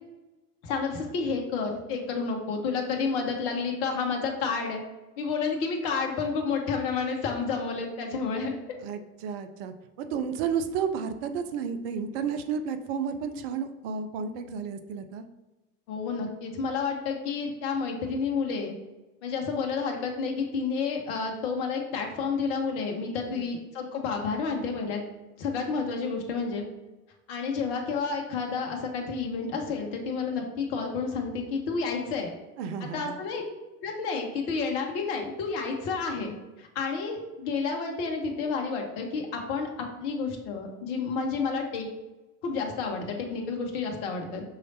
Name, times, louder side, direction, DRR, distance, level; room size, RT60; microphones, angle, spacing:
voice 1, 0.6-4.8 5.2-8.6 15.9-18.7 19.2-25.0 25.4-26.6 27.3-32.3 32.9-33.4 33.8-41.9 42.4-44.4, left 5 dB, 50° left, 2 dB, 1.0 m, -30 dB
voice 2, 8.8-15.2 23.2-23.5 32.6-33.2, right 6 dB, 45° right, 9 dB, 0.5 m, -32 dB
5.7 x 3.1 x 2.7 m, 1.1 s
figure-of-eight pair, 85°, 45 cm